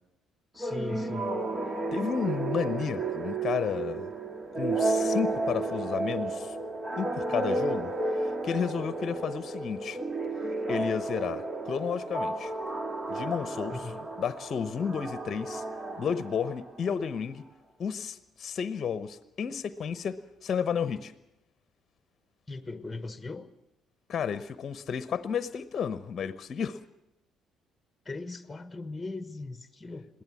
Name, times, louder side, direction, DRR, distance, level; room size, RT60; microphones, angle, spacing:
voice 1, 0.5-1.4 9.1-9.2 13.7-14.1 22.5-23.5 28.0-30.2, left 3 dB, 20° left, 11 dB, 1.3 m, -39 dB
sound 1, 0.6-17.0, right 2 dB, 30° right, 2.0 m, -32 dB
voice 2, 1.9-4.1 4.6-6.6 7.0-10.0 10.7-12.5 13.1-13.9 14.2-15.6 16.0-17.4 17.8-21.1 24.1-26.8, left 7 dB, 45° left, 14 dB, 0.9 m, -32 dB
21.5 x 16.5 x 7.3 m, 0.89 s
hypercardioid pair, 50°, 0 cm